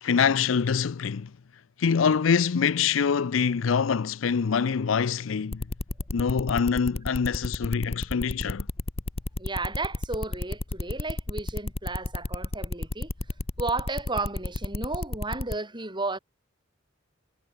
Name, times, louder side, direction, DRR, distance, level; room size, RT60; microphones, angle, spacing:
voice 1, 0.0-1.3 1.8-5.7 6.1-8.7, left 6 dB, 90° left, 0.5 m, -25 dB
sound 1, 5.5-15.5, left 2 dB, 30° left, 0.7 m, -31 dB
voice 2, 9.4-13.1 13.6-16.2, right 3 dB, 25° right, 4.9 m, -33 dB
head